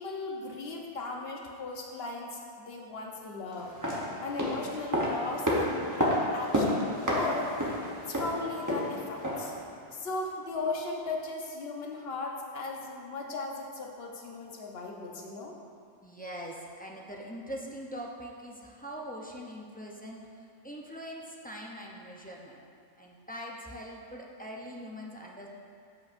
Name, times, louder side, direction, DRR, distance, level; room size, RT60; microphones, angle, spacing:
voice 1, 0.0-3.7 4.2-7.5 8.1-9.5 9.9-15.5, left 3 dB, 60° left, 0 dB, 1.1 m, -37 dB
sound 1, 3.6-9.6 9.9-10.0, equal, 15° right, 0.9 m, -30 dB
voice 2, 16.0-22.6 23.0-25.5, equal, 10° left, -3 dB, 0.5 m, -42 dB
14.0 x 5.2 x 2.6 m, 2.4 s
omnidirectional pair, 1.2 m